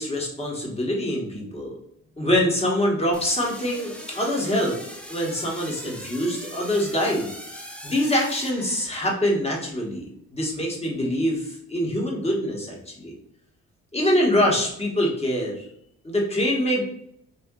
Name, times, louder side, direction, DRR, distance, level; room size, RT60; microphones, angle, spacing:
voice 1, 0.0-1.7 2.2-4.8 5.1-7.3 7.8-10.1 10.3-13.1 13.9-15.6 16.0-16.8, equal, 20° left, -2 dB, 1.2 m, -24 dB
sound 1, 3.1-9.3, equal, 5° left, 0.5 m, -40 dB
2.8 x 2.5 x 3.7 m, 0.71 s
cardioid pair, 90°, 30 cm